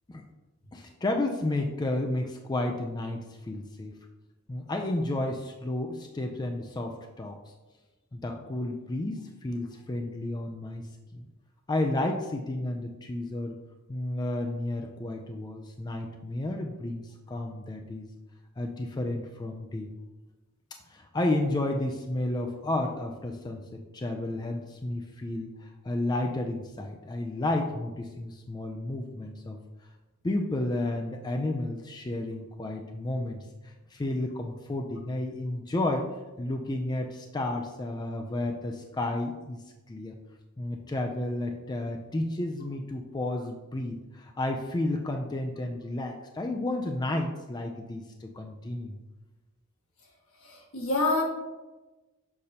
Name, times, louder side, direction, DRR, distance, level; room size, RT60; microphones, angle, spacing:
voice 1, 0.7-4.0 4.5-7.4 8.1-10.9 11.1-11.3 11.7-13.5 13.9-18.1 18.6-19.9 20.9-29.6 30.2-36.1 36.4-39.6 39.9-40.1 40.6-49.0, left 1 dB, 20° left, 3 dB, 0.4 m, -32 dB
voice 2, 50.4-51.2, left 2 dB, 80° left, -1 dB, 1.5 m, -27 dB
6.6 x 5.3 x 2.8 m, 1.1 s
head